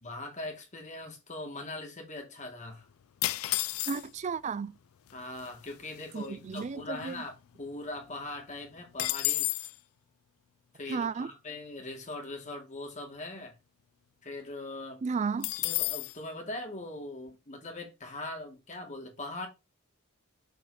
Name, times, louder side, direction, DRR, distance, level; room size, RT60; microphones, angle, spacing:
voice 1, 0.0-2.9 5.1-9.5 10.7-13.6 14.2-15.0 15.6-19.5, left 2 dB, 35° left, 2.2 m, -41 dB
sound 1, 3.2-4.3 5.1-5.2 5.4-5.7 6.2-7.6 8.0-8.1 8.4-9.8 15.4-16.2, left 19 dB, 70° left, 0.3 m, -32 dB
voice 2, 3.9-4.8 6.1-7.2 10.9-11.3 15.0-15.5, right 5 dB, 35° right, 0.3 m, -33 dB
7.1 x 3.9 x 4.2 m
head